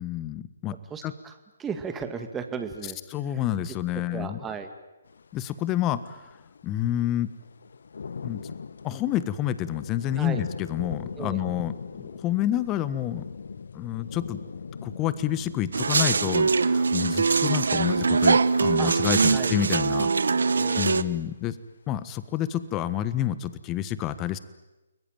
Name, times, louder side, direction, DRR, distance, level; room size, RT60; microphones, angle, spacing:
voice 1, 0.0-0.8 1.0-1.1 3.1-4.4 5.3-6.2 6.6-7.3 8.2-8.5 8.8-11.7 12.0-13.3 13.7-14.4 14.8-20.1 20.8-21.5 21.9-24.4, left 12 dB, 20° left, 15 dB, 1.3 m, -28 dB
voice 2, 0.9-3.0 3.3-3.4 3.9-4.7 10.2-10.4 11.2-11.4 18.8-18.9 19.3-19.5 20.5-21.2, right 6 dB, 10° right, 6 dB, 2.0 m, -36 dB
sound 1, 5.1-21.7 22.1-22.7, left 5 dB, 65° left, 1.1 m, -41 dB
sound 2, 15.7-21.0, right 4 dB, 70° right, 1.1 m, -22 dB
30.0 x 21.0 x 9.2 m, 1.1 s
figure-of-eight pair, 140°, 0 cm